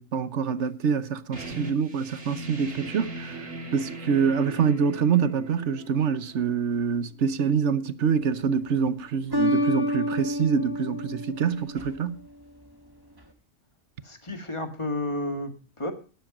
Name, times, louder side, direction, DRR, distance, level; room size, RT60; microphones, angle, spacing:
voice 1, 0.0-12.2, right 6 dB, 65° right, 1.2 m, -26 dB
sound 1, 1.3-6.8, right 2 dB, 85° right, 3.1 m, -39 dB
sound 2, 8.1-8.6 9.3-12.2, equal, 20° right, 1.3 m, -29 dB
voice 2, 14.0-15.9, left 2 dB, 25° left, 1.9 m, -31 dB
13.0 x 10.5 x 5.0 m
omnidirectional pair, 1.3 m